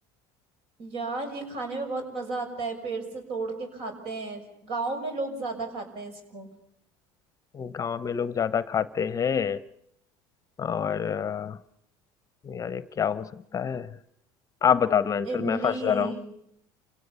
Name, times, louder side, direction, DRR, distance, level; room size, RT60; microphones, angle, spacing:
voice 1, 0.8-6.5 15.2-16.3, right 3 dB, 60° right, 6 dB, 6.2 m, -33 dB
voice 2, 7.5-9.6 10.6-11.6 12.4-13.3 13.5-13.9 14.6-16.1, left 7 dB, 30° left, 16 dB, 0.8 m, -26 dB
28.5 x 17.5 x 7.0 m, 0.77 s
supercardioid pair, 105°, 11 cm